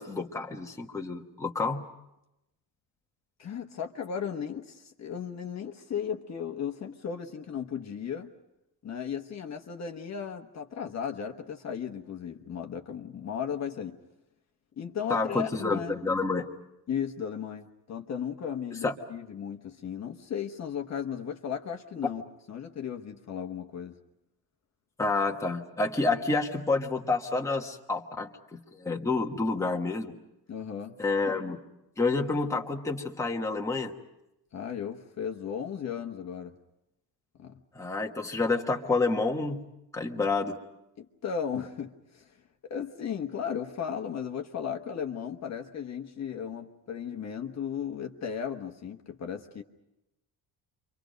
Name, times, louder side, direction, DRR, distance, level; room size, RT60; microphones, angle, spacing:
voice 1, 0.0-1.9 15.1-16.5 18.8-18.9 25.0-30.1 31.0-31.6 32.0-33.9 37.7-39.7 39.9-40.6, left 3 dB, 5° left, 1 dB, 1.3 m, -29 dB
voice 2, 3.4-8.3 8.8-14.0 14.8-16.0 16.9-22.2 22.5-24.0 30.5-30.9 34.5-36.5 37.4-37.6 41.0-42.3 42.6-49.6, left 7 dB, 40° left, 4 dB, 1.2 m, -35 dB
30.0 x 25.0 x 5.2 m, 0.90 s
cardioid pair, 170°, 42 cm